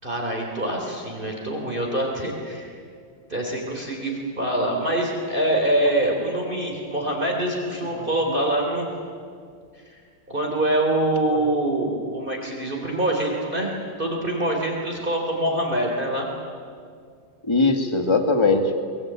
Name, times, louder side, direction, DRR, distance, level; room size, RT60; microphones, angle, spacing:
voice 1, 0.0-2.7 3.3-8.9 9.9-10.0 10.3-13.7 14.0-16.3, right 1 dB, 25° right, 0 dB, 3.6 m, -25 dB
voice 2, 7.9-8.4 11.3-11.4 17.4-18.7, left 3 dB, 15° left, 6 dB, 1.8 m, -21 dB
24.0 x 22.0 x 8.9 m, 2.2 s
omnidirectional pair, 2.1 m